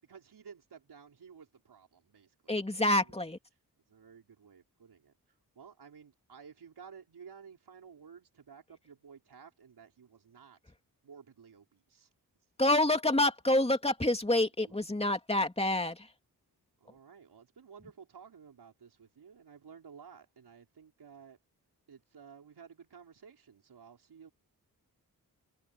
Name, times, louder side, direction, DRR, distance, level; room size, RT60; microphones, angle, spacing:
voice 1, 0.0-2.6 3.0-3.1 3.9-10.7 11.0-12.1 14.6-14.8 16.8-21.4 21.9-24.3, right 6 dB, 80° right, 5.3 m, -54 dB
voice 2, 2.5-3.4 12.6-16.1, left 1 dB, 15° left, 2.9 m, -27 dB
open air
cardioid pair, 50°, 38 cm